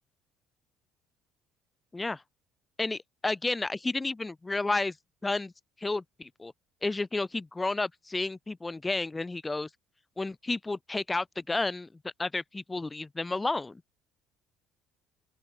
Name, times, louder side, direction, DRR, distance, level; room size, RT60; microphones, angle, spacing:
voice 1, 2.8-4.9 5.2-5.5 5.8-6.5 6.8-9.7 10.2-11.9 12.2-13.8, left 3 dB, 20° left, 4.0 m, -31 dB
open air
hypercardioid pair, 60°, 0 cm